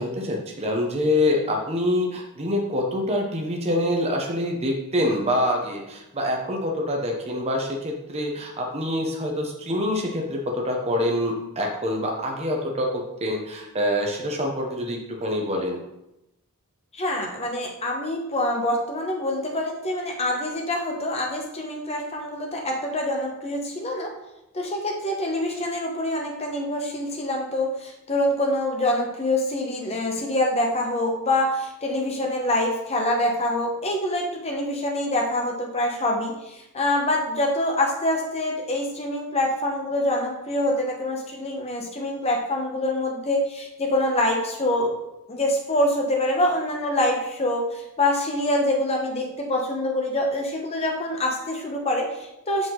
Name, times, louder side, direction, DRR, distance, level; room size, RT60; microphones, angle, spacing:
voice 1, 0.0-15.8, left 1 dB, 30° right, 0 dB, 0.9 m, -26 dB
voice 2, 16.9-24.1 24.5-44.9 45.3-52.7, left 1 dB, 30° left, 0 dB, 1.1 m, -25 dB
5.9 x 5.1 x 3.8 m, 0.90 s
head